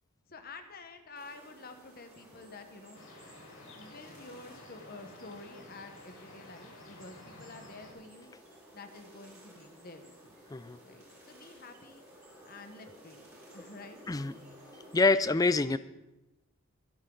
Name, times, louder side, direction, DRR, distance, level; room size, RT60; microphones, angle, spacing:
voice 1, 0.3-3.0 3.8-8.3 8.7-10.4 10.8-12.1 12.4-13.3 13.5-14.2, left 3 dB, 45° left, 7 dB, 1.2 m, -49 dB
sound 1, 1.1-15.0, right 1 dB, 15° right, 5.2 m, -55 dB
sound 2, 2.9-7.9, left 2 dB, 75° left, 4.7 m, -52 dB
voice 2, 14.9-15.8, left 3 dB, 15° left, 14 dB, 0.4 m, -26 dB
24.0 x 8.4 x 3.9 m, 0.99 s
head